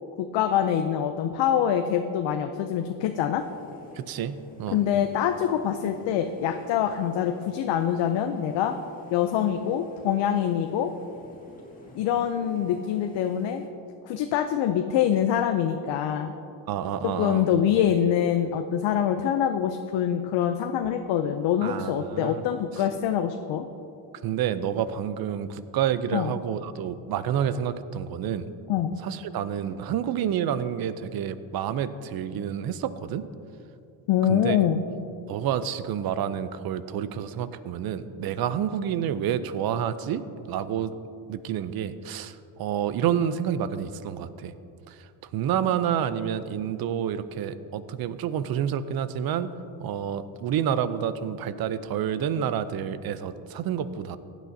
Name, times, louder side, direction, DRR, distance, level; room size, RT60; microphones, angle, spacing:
voice 1, 0.2-3.4 4.7-8.7 9.1-10.9 12.0-13.6 14.0-16.3 17.0-23.7 26.1-26.3 28.7-28.9 34.1-34.8, left 9 dB, 70° left, 6 dB, 0.6 m, -25 dB
sound 1, 3.3-13.7, left 2 dB, 20° left, 1.9 m, -48 dB
voice 2, 3.9-4.8 16.7-17.5 21.6-22.4 24.2-28.5 29.0-33.3 34.3-34.6 35.3-40.9 41.3-44.5 44.9-49.5 49.8-54.2, right 9 dB, 55° right, 13 dB, 0.6 m, -29 dB
15.5 x 9.1 x 2.7 m, 2.7 s
cardioid pair, 105°, 45 cm